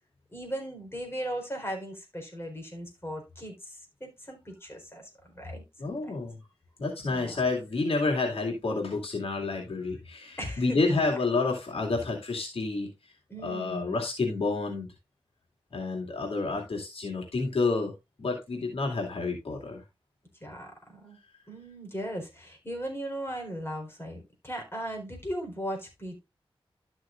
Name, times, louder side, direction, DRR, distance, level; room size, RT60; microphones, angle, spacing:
voice 1, 0.3-6.1 7.1-7.4 10.4-11.0 13.3-14.0 20.4-21.2 21.5-26.2, equal, 25° left, 4.2 m, -38 dB
voice 2, 5.8-6.4 6.8-12.9 13.4-14.9 15.7-17.9 18.2-19.8, left 3 dB, 90° left, 2.4 m, -29 dB
12.5 x 6.3 x 2.5 m
cardioid pair, 50°, 10 cm